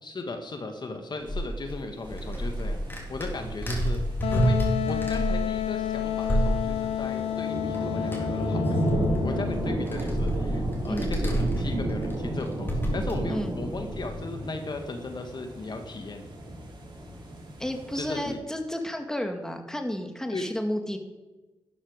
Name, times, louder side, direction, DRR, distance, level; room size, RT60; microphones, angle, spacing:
voice 1, 0.0-2.8 3.1-4.0 4.3-9.0 9.2-16.2 17.9-18.4 20.3-20.5, left 3 dB, 50° left, 5 dB, 1.8 m, -36 dB
sound 1, 1.3-6.9 7.7-7.8 8.0-14.1, right 1 dB, 20° left, 4.6 m, -29 dB
sound 2, 2.0-18.3, right 1 dB, 50° right, 5.1 m, -34 dB
Wind instrument woodwind instrument, 4.2-9.8, left 11 dB, 85° left, 0.5 m, -30 dB
voice 2, 17.6-21.0, left 1 dB, 5° left, 4 dB, 2.0 m, -32 dB
12.0 x 8.6 x 6.4 m, 1.2 s
cardioid pair, 55°, 10 cm